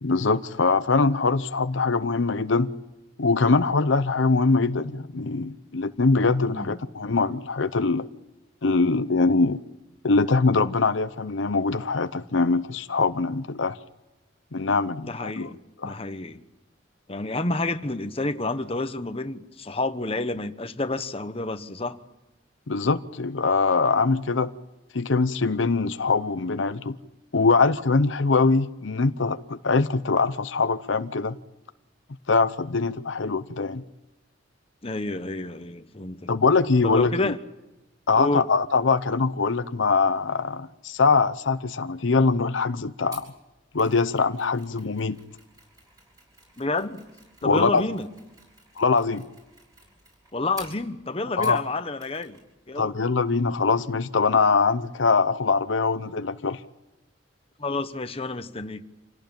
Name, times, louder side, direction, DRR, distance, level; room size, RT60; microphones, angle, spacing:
voice 1, 0.0-2.7 3.2-8.1 8.6-9.6 10.0-13.8 14.5-15.5 15.8-16.0 22.7-24.5 24.9-26.9 27.3-31.4 32.3-33.8 36.3-37.3 38.1-43.2 43.7-45.2 47.4-47.8 48.8-49.3 51.4-51.6 52.8-56.6, left 4 dB, 75° left, 0.8 m, -23 dB
voice 2, 15.0-16.4 17.1-22.0 34.8-36.3 36.8-37.4 38.2-38.5 46.6-47.0 47.4-48.1 50.3-52.4 52.7-52.9 57.6-58.8, left 2 dB, 30° left, 1.1 m, -29 dB
Mechanisms, 43.1-51.7 52.0-52.5 52.7-52.9, right 2 dB, 20° right, 8.0 m, -50 dB
27.5 x 17.5 x 8.9 m
head